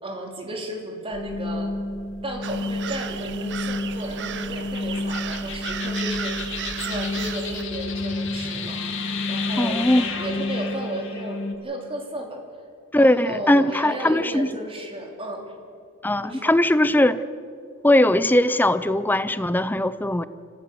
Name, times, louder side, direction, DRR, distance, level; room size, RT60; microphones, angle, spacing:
voice 1, 0.0-1.7 2.2-6.4 6.8-12.4 12.9-15.5 16.2-16.5, right 1 dB, 25° right, 2 dB, 3.1 m, -34 dB
sound 1, 1.1-11.5, left 2 dB, 60° left, 2.1 m, -30 dB
sound 2, 2.4-7.6, right 9 dB, 55° right, 0.8 m, -34 dB
voice 2, 9.6-10.1 12.9-14.5 16.0-17.2 17.8-20.3, left 1 dB, 10° left, 14 dB, 0.5 m, -19 dB
26.0 x 15.0 x 6.9 m, 2.3 s
head